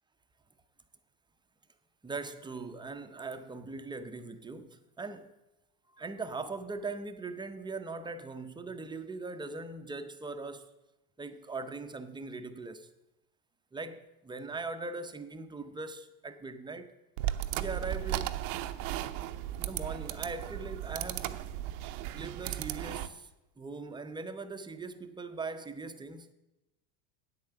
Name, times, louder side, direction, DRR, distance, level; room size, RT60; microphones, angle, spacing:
voice 1, 2.0-5.3 5.9-10.7 11.2-12.9 13.7-16.9 17.5-18.4 19.5-21.5 22.1-23.3 23.6-26.3, right 3 dB, 10° right, 0.7 m, -40 dB
sound 1, 17.2-23.1, right 13 dB, 65° right, 0.8 m, -36 dB
8.6 x 8.5 x 6.8 m
hypercardioid pair, 100°, 48 cm